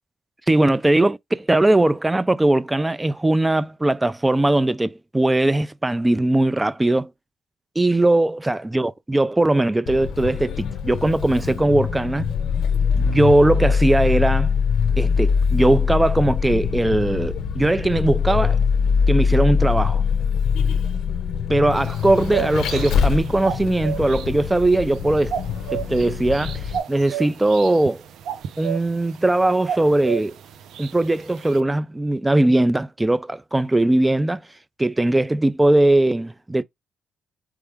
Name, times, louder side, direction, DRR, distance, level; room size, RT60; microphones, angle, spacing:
voice 1, 0.5-7.1 7.8-12.3 13.0-14.5 15.0-18.6 19.1-20.0 21.5-25.3 25.7-28.0 28.6-30.4 30.8-34.4 34.8-36.6, right 2 dB, 15° right, 0.4 m, -19 dB
Vehicle, 9.9-26.8, left 6 dB, 70° left, 0.8 m, -23 dB
sound 1, 21.8-31.6, right 9 dB, 75° right, 0.6 m, -34 dB
4.7 x 2.2 x 3.4 m
cardioid pair, 90°, 0 cm